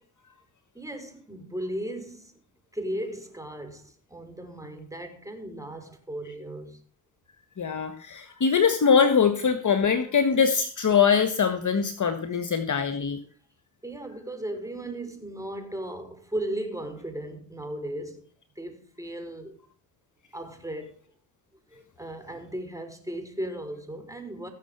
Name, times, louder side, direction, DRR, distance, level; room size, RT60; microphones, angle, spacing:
voice 1, 0.7-2.3 2.7-6.8 13.8-18.3 18.6-19.6 20.3-21.0 21.7-24.5, right 1 dB, 5° right, 4.6 m, -36 dB
voice 2, 7.6-13.2, left 6 dB, 35° left, 1.6 m, -22 dB
15.5 x 6.8 x 6.8 m
hypercardioid pair, 55°, 48 cm